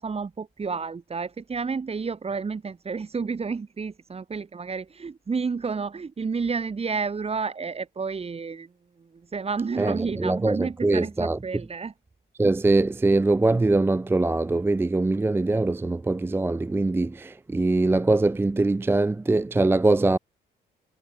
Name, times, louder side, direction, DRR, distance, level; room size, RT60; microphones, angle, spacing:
voice 1, 0.0-8.7 9.3-11.9, right 5 dB, 30° right, 1.7 m, -30 dB
voice 2, 9.8-11.4 12.4-20.2, right 2 dB, 10° right, 0.4 m, -22 dB
cardioid pair, 90°, 20 cm